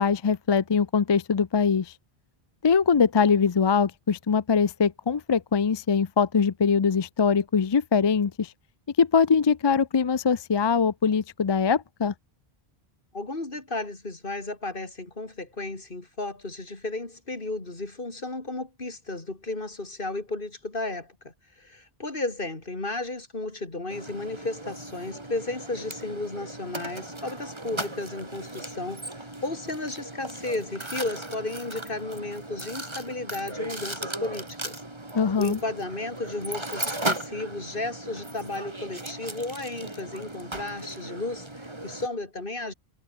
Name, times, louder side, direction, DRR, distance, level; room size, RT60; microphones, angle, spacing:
voice 1, 0.0-1.9 2.6-8.5 9.0-12.1 35.1-35.6, left 6 dB, 35° left, 0.4 m, -22 dB
voice 2, 13.1-34.8 35.4-42.7, left 2 dB, 55° left, 3.5 m, -34 dB
Mechanisms, 23.9-42.1, right 1 dB, 25° right, 2.8 m, -37 dB
omnidirectional pair, 1.1 m